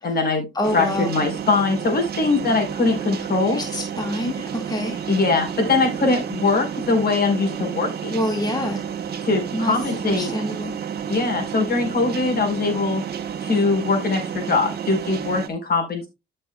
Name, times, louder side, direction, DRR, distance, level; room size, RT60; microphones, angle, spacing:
voice 1, 0.0-0.4 0.7-3.6 5.1-8.1 9.2-10.3 11.1-13.0 13.4-16.1, left 3 dB, 50° left, 4.5 m, -22 dB
voice 2, 0.5-1.1 3.5-5.0 8.1-8.9 9.5-9.7 10.2-10.7, left 1 dB, 20° left, 2.1 m, -26 dB
sound 1, 0.6-15.5, right 8 dB, 55° right, 1.4 m, -31 dB
13.5 x 6.6 x 2.4 m
cardioid pair, 90°, 20 cm